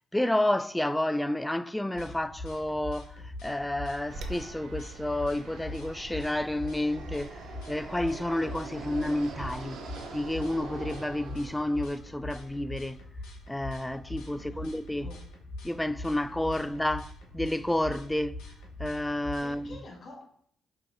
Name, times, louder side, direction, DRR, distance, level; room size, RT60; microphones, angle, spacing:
voice 1, 0.1-9.8 10.1-13.0 13.5-15.1 15.6-18.4 18.8-19.8, left 1 dB, 10° left, 0.3 m, -30 dB
sound 1, 1.9-19.7, left 2 dB, 80° left, 0.9 m, -43 dB
Fixed-wing aircraft airplane, 4.1-11.9, right 3 dB, 70° right, 0.6 m, -43 dB
voice 2, 14.3-15.3 19.4-20.3, left 2 dB, 50° left, 1.0 m, -49 dB
5.5 x 3.2 x 2.6 m
hypercardioid pair, 50°, 0 cm